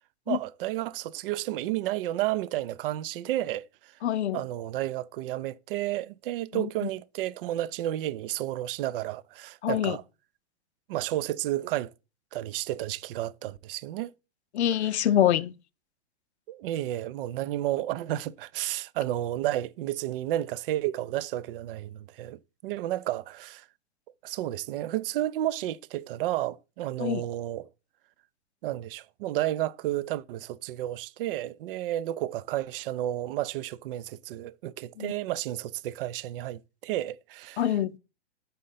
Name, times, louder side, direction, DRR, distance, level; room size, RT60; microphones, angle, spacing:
voice 1, 0.3-3.9 4.3-10.0 10.9-11.9 12.3-14.1 16.5-23.6 24.2-27.7 28.6-37.7, right 14 dB, 55° right, 0.5 m, -32 dB
voice 2, 4.0-4.4 6.5-6.9 9.6-10.0 14.5-15.5 27.0-27.2 35.0-35.1 37.6-38.0, left 11 dB, 85° left, 0.5 m, -25 dB
5.5 x 3.7 x 5.5 m
hypercardioid pair, 130°, 33 cm